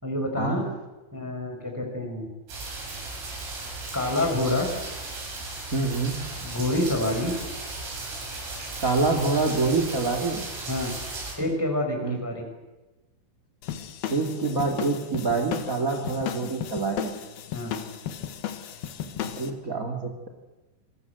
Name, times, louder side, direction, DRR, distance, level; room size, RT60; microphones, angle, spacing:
voice 1, 0.0-0.7 1.1-2.3 3.9-4.7 6.4-7.4 10.7-10.9 11.4-12.4 17.5-17.7, left 1 dB, 5° right, 2 dB, 4.3 m, -27 dB
sound 1, 2.5-11.3, right 2 dB, 75° right, 10.0 m, -36 dB
voice 2, 5.7-6.3 8.8-10.4 12.0-12.2 14.1-17.2 19.0-20.3, right 3 dB, 60° right, 5 dB, 0.9 m, -26 dB
sound 2, 13.6-19.5, left 10 dB, 65° left, 2.7 m, -35 dB
27.5 x 21.0 x 8.1 m, 1.1 s
omnidirectional pair, 5.8 m